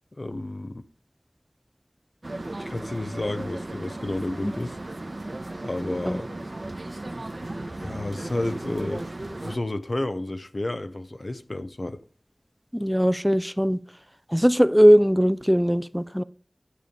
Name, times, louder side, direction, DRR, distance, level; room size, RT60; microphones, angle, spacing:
voice 1, 0.2-0.8 2.6-4.8 5.6-6.3 7.8-9.1 9.4-12.0, left 1 dB, 55° left, 0.8 m, -31 dB
sound 1, 2.2-9.6, right 2 dB, 55° right, 0.9 m, -36 dB
voice 2, 12.7-13.8 14.3-16.2, equal, ahead, 0.4 m, -19 dB
11.5 x 6.9 x 3.8 m
wide cardioid pair, 40°, 0 cm